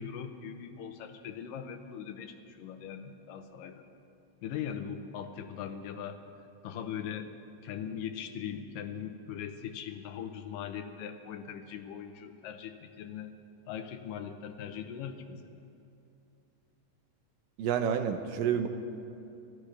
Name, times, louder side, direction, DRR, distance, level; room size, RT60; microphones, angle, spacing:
voice 1, 0.0-3.9 4.4-6.2 6.6-7.3 7.6-13.3 13.7-15.4, left 8 dB, 80° left, 8 dB, 2.5 m, -40 dB
voice 2, 17.6-18.7, right 8 dB, 80° right, 7 dB, 2.5 m, -29 dB
29.5 x 13.5 x 3.4 m, 2.8 s
omnidirectional pair, 3.9 m